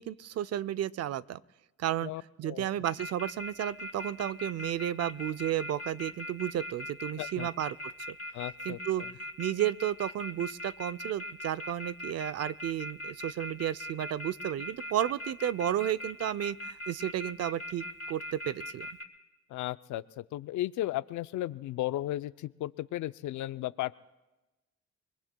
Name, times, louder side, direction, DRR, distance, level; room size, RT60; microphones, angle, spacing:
voice 1, 0.0-1.4 1.8-2.1 2.4-8.2 8.7-9.0 9.4-18.9, right 12 dB, 55° right, 16 dB, 0.5 m, -33 dB
voice 2, 2.0-2.8 7.2-7.5 8.3-9.1 19.5-23.9, left 15 dB, 75° left, 15 dB, 0.5 m, -35 dB
sound 1, 2.8-19.0, equal, 55° left, 2.3 m, -39 dB
30.0 x 21.0 x 2.2 m, 1.1 s
cardioid pair, 90°, 30 cm